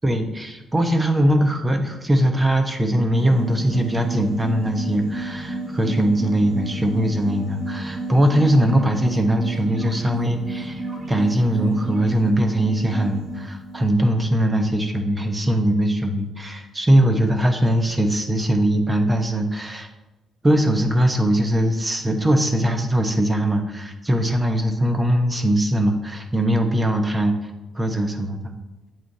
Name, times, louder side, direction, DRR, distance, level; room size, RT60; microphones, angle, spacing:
voice 1, 0.0-19.9 20.4-27.3 27.7-28.5, right 1 dB, 20° right, 5 dB, 0.9 m, -21 dB
sound 1, 3.1-13.9, right 2 dB, 45° right, 1.5 m, -32 dB
8.3 x 7.5 x 2.7 m, 1.0 s
cardioid pair, 115°, 0 cm